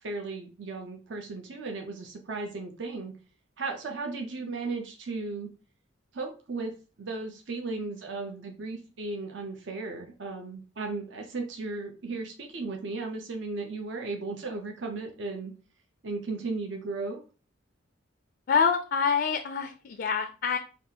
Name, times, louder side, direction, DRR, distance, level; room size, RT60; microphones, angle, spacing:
voice 1, 0.0-3.1 3.6-5.5 6.1-6.7 7.0-15.5 16.0-17.2, right 3 dB, 60° right, 3 dB, 0.6 m, -35 dB
voice 2, 18.5-20.6, left 6 dB, 50° left, 5 dB, 0.4 m, -26 dB
5.3 x 2.4 x 2.7 m, 0.35 s
head